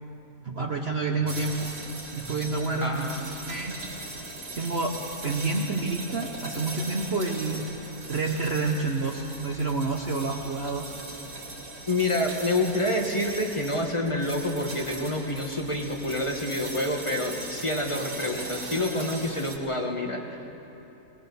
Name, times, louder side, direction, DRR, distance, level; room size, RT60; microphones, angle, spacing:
voice 1, 0.4-1.7 2.1-3.7 4.6-7.6 8.1-10.9, right 3 dB, 45° right, 1 dB, 1.3 m, -29 dB
sound 1, 1.3-19.6, right 2 dB, 65° right, 3.3 m, -39 dB
voice 2, 2.8-3.4 11.9-20.6, left 1 dB, 20° left, 2 dB, 1.7 m, -28 dB
22.5 x 20.5 x 7.0 m, 3.0 s
omnidirectional pair, 1.7 m